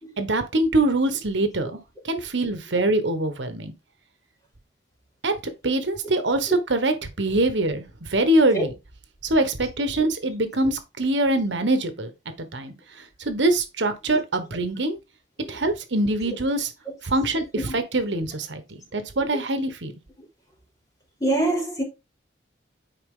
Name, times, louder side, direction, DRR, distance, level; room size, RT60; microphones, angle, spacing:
voice 1, 0.2-1.8 2.0-3.7 5.2-5.4 5.6-8.7 9.2-12.1 12.4-12.7 13.2-15.0 15.5-16.7 17.0-18.6 18.9-19.9, right 2 dB, 75° right, 1.3 m, -23 dB
voice 2, 21.2-21.8, right 2 dB, 20° left, 3.4 m, -25 dB
9.6 x 4.6 x 3.8 m
head